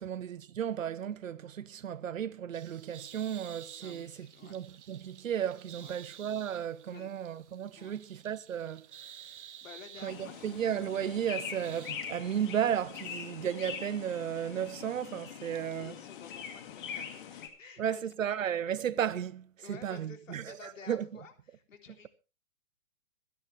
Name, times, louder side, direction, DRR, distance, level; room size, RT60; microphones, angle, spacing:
voice 1, 0.0-4.1 4.4-8.8 10.0-15.9 17.8-21.1, right 9 dB, 90° right, 1.1 m, -34 dB
sound 1, 2.5-11.9, right 9 dB, 65° right, 1.8 m, -52 dB
voice 2, 3.8-4.5 5.7-5.9 6.9-7.1 7.8-8.0 9.6-10.5 15.4-18.5 19.6-22.1, left 6 dB, 80° left, 3.5 m, -52 dB
sound 2, 10.1-17.5, left 8 dB, 40° left, 2.4 m, -43 dB
25.5 x 9.8 x 3.4 m
hypercardioid pair, 165°, 38 cm